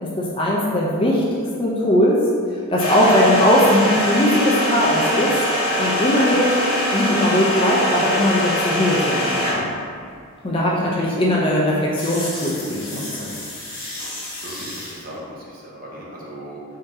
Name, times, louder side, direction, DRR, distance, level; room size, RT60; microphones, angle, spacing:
voice 1, 0.0-2.3 2.7-5.3 5.8-6.6 6.9-9.7 10.4-13.3, left 1 dB, 25° left, -4 dB, 0.4 m, -19 dB
sound 1, 2.8-9.8 11.9-15.0, left 1 dB, 55° left, 1.2 m, -24 dB
voice 2, 10.8-11.1 14.4-16.6, right 1 dB, 40° right, -5 dB, 0.8 m, -37 dB
4.2 x 3.7 x 2.7 m, 2.2 s
head